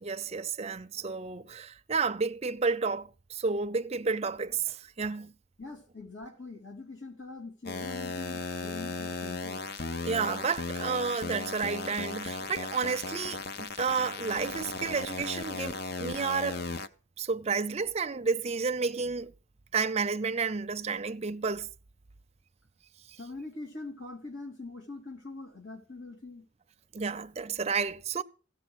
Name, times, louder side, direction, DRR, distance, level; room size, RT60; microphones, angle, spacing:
voice 1, 0.0-5.3 10.0-16.7 17.2-19.3 19.7-21.7 26.9-28.2, right 5 dB, 35° right, 0.5 m, -31 dB
voice 2, 5.6-9.7 23.2-26.5, left 3 dB, 70° left, 2.9 m, -43 dB
sound 1, 7.7-16.9, left 3 dB, 55° left, 0.7 m, -36 dB
15.5 x 7.9 x 6.2 m
head